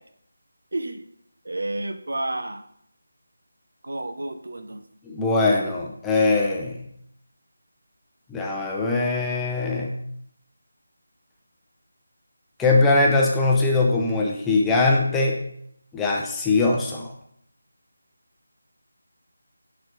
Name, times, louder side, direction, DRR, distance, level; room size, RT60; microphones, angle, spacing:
voice 1, 1.4-2.6 3.8-4.8, right 2 dB, 65° right, 8 dB, 0.7 m, -30 dB
voice 2, 5.0-6.8 8.3-9.9 12.6-15.4 15.9-17.1, left 3 dB, 5° left, -2 dB, 0.7 m, -21 dB
10.5 x 4.0 x 3.3 m, 0.70 s
figure-of-eight pair, 160°, 0 cm